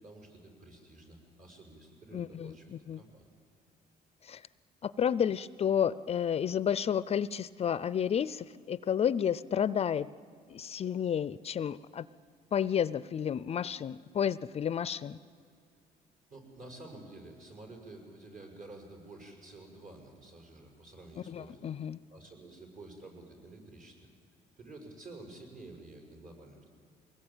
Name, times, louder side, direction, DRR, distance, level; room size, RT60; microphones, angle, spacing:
voice 1, 0.0-3.3 16.3-21.7 22.1-24.1 24.6-26.7, right 2 dB, 55° right, 2 dB, 6.4 m, -50 dB
voice 2, 2.1-3.0 4.2-4.4 4.8-10.1 10.5-12.0 12.5-15.2 21.3-22.0, left 8 dB, 35° left, 17 dB, 0.5 m, -31 dB
23.0 x 19.5 x 9.0 m, 2.4 s
cardioid pair, 110°, 17 cm